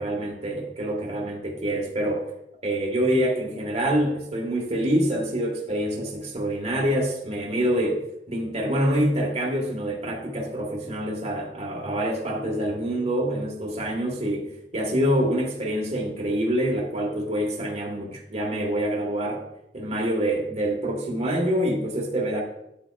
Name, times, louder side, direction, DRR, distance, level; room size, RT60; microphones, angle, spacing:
voice 1, 0.0-2.3 2.6-8.0 8.3-19.4 19.7-22.4, equal, 40° right, -1 dB, 1.7 m, -26 dB
10.0 x 8.6 x 2.5 m, 0.85 s
head